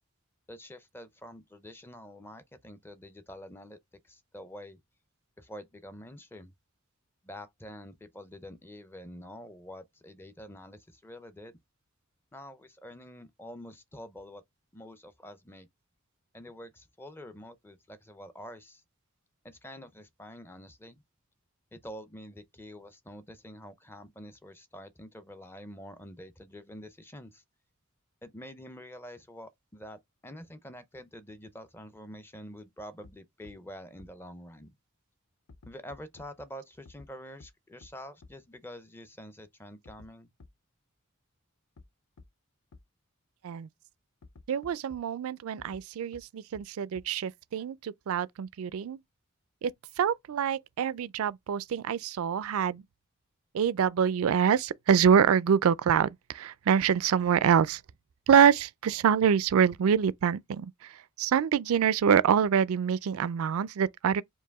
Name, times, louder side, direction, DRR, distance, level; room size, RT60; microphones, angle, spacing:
voice 1, 0.5-3.8 4.0-4.8 5.4-6.5 7.2-11.6 12.3-14.4 14.7-15.7 16.3-18.8 19.4-21.0 21.7-27.4 28.2-34.8 35.7-40.3, equal, 10° left, 0.5 m, -47 dB
sound 1, 33.0-33.1 33.4-33.5 34.0-34.1 35.5-36.3 36.8-37.1 37.4-37.5 37.8-37.9 38.2-38.3 39.8-40.1 40.4-40.5 41.8-41.9 42.2-42.3 42.7-42.8 44.2-45.0 45.6-45.8 46.1-46.2 46.5-46.6 46.9-47.0, left 3 dB, 70° left, 0.5 m, -52 dB
voice 2, 44.5-49.0 49.6-49.7 50.0-52.8 53.5-57.8 58.3-64.2, right 7 dB, 70° right, 0.3 m, -25 dB
4.7 x 2.6 x 3.5 m
head